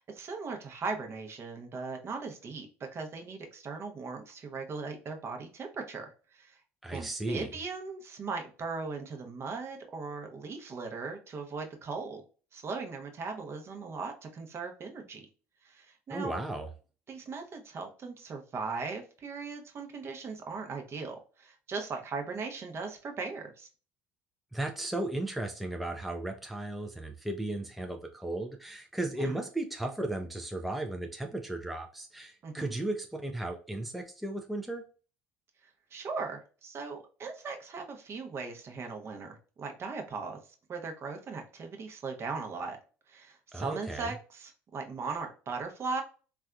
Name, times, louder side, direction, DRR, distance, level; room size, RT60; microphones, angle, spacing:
voice 1, 0.0-2.7 2.9-6.6 6.9-12.2 12.5-15.3 15.6-16.4 17.1-23.7 29.2-29.4 32.4-32.7 35.9-40.4 40.7-42.8 43.1-46.0, right 4 dB, 40° right, 3 dB, 0.7 m, -38 dB
voice 2, 6.8-7.5 16.1-16.7 24.5-34.8 43.5-44.1, right 2 dB, ahead, 4 dB, 0.4 m, -35 dB
3.4 x 2.2 x 2.3 m, 0.37 s
hypercardioid pair, 75°, 6 cm